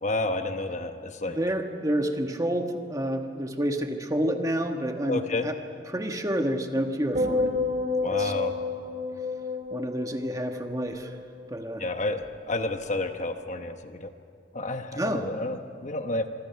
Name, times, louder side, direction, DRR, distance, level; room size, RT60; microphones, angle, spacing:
voice 1, 0.0-1.4 5.1-5.5 8.0-8.5 11.8-12.2 12.5-14.1 14.5-16.3, left 2 dB, 40° left, 7 dB, 1.0 m, -30 dB
voice 2, 1.3-5.5 5.9-7.5 8.1-8.3 9.7-11.1 11.5-11.8 14.9-15.3, right 1 dB, 20° right, 5 dB, 1.4 m, -29 dB
sound 1, 7.1-11.5 11.8-12.3, left 3 dB, 45° right, 2.5 m, -30 dB
25.5 x 24.5 x 5.8 m, 2.3 s
head